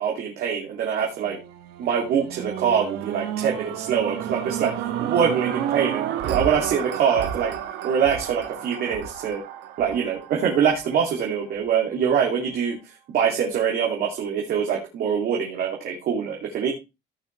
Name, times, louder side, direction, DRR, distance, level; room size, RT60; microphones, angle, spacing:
voice 1, 0.0-1.4 1.8-7.5 7.8-9.4 9.8-12.8 13.1-16.7, right 7 dB, 65° right, -1 dB, 2.9 m, -24 dB
sound 1, 1.2-11.4 12.0-12.1, right 10 dB, 85° right, 1.5 m, -31 dB
16.0 x 6.2 x 3.3 m, 0.26 s
cardioid pair, 110°, 17 cm